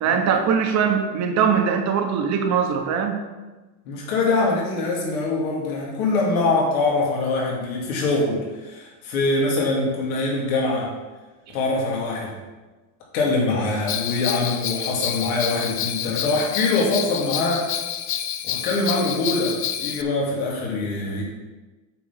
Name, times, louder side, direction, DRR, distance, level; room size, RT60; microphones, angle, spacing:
voice 1, 0.0-3.2 11.5-11.6, right 7 dB, 40° right, 5 dB, 1.1 m, -21 dB
voice 2, 3.9-10.9 11.5-12.3 13.1-17.6 18.4-21.2, left 3 dB, 90° left, -3 dB, 2.5 m, -23 dB
Bell, 13.9-20.0, left 10 dB, 30° left, 0.4 m, -28 dB
8.3 x 4.1 x 5.8 m, 1.2 s
supercardioid pair, 140°, 42 cm